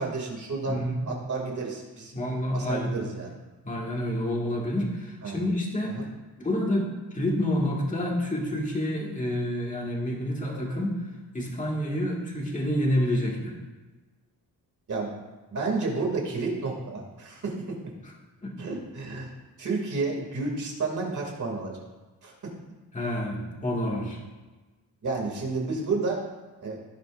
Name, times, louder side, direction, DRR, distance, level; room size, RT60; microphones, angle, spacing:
voice 1, 0.0-0.8 1.0-2.1 2.5-3.3 5.2-5.4 5.9-6.1 14.9-15.1 15.5-17.5 18.6-19.3 19.6-21.7 22.2-22.3 25.0-26.2 26.6-26.8, right 3 dB, 50° right, -1 dB, 2.6 m, -30 dB
voice 2, 0.7-1.1 2.1-3.0 3.6-6.0 6.4-11.0 11.3-13.5 18.4-18.5 22.9-24.2, left 1 dB, 20° left, -2 dB, 2.1 m, -28 dB
16.5 x 9.2 x 2.6 m, 1.2 s
wide cardioid pair, 165°, 39 cm